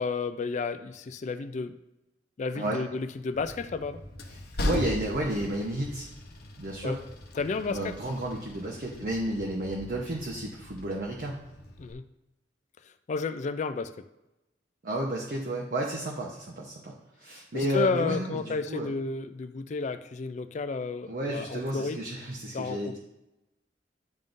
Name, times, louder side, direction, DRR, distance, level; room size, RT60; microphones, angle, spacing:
voice 1, 0.0-1.8 2.4-4.0 6.8-7.0 7.4-7.9 11.8-12.0 13.1-14.1 17.5-22.0 22.5-23.0, left 4 dB, 40° left, 10 dB, 0.3 m, -31 dB
Train, 3.3-11.9, left 1 dB, 60° left, 0.8 m, -38 dB
voice 2, 4.6-6.1 6.6-7.0 7.6-11.4 14.8-16.9 17.2-18.9 21.1-23.0, right 1 dB, 50° right, -2 dB, 0.8 m, -32 dB
10.5 x 3.6 x 2.6 m, 0.94 s
head